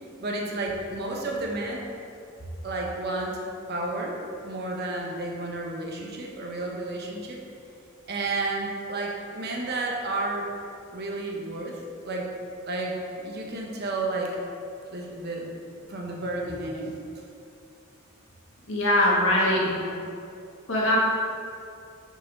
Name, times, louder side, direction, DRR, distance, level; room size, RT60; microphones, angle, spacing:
voice 1, 0.2-1.8 2.6-3.4 3.7-7.4 8.1-10.5 10.9-11.8 12.0-12.3 12.7-14.4 14.9-15.5 15.9-17.0 19.4-20.1, right 2 dB, 50° right, 0 dB, 0.9 m, -32 dB
voice 2, 18.7-19.7 20.7-21.0, left 1 dB, 65° left, -5 dB, 1.6 m, -21 dB
6.2 x 4.6 x 5.2 m, 2.5 s
head